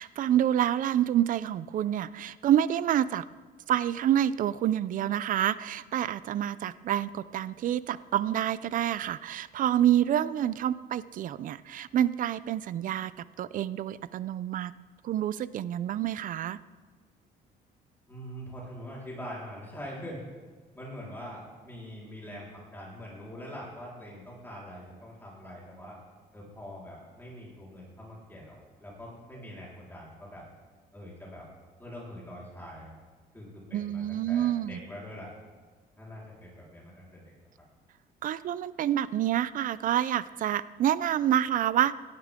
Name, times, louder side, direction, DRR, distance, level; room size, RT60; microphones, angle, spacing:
voice 1, 0.0-3.3 3.7-14.7 15.0-16.6 33.7-34.8 38.2-41.9, right 11 dB, 55° right, 17 dB, 0.5 m, -28 dB
voice 2, 18.1-20.3 20.7-26.0 26.3-30.4 30.9-31.5 31.8-32.9 33.3-35.3 36.0-37.2, equal, 10° left, -5 dB, 4.3 m, -43 dB
17.5 x 12.0 x 3.7 m, 1.4 s
cardioid pair, 110°, 17 cm